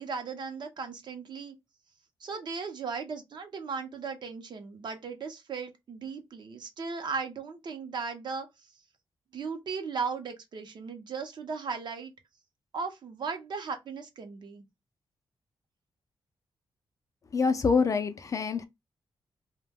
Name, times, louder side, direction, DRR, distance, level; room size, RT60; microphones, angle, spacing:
voice 1, 0.0-1.5 2.2-8.5 9.3-12.1 12.7-14.6, right 5 dB, 55° right, 0.7 m, -37 dB
voice 2, 17.3-18.7, left 5 dB, 40° left, 0.4 m, -25 dB
2.1 x 2.1 x 3.3 m
wide cardioid pair, 130°, 9 cm